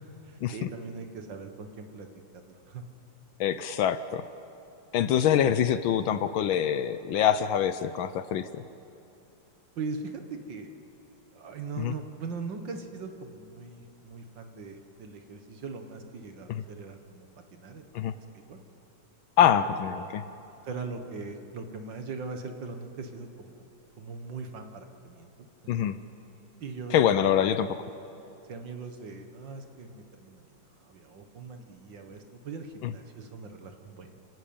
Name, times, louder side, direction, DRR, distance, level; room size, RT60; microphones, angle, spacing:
voice 1, 0.0-2.1 2.5-2.8 9.8-10.7 11.3-17.9 18.2-18.6 19.4-19.6 19.9-20.1 20.6-23.6 24.0-25.5 26.6-27.5 28.5-30.5 30.8-34.2, right 4 dB, 60° right, 6 dB, 1.9 m, -40 dB
voice 2, 3.4-4.2 4.9-8.6 11.8-11.9 16.5-16.6 17.9-18.1 19.4-20.2 25.7-26.0 26.9-27.8 32.8-32.9, left 9 dB, 70° left, 13 dB, 1.4 m, -25 dB
29.5 x 13.0 x 8.8 m, 2.8 s
omnidirectional pair, 2.4 m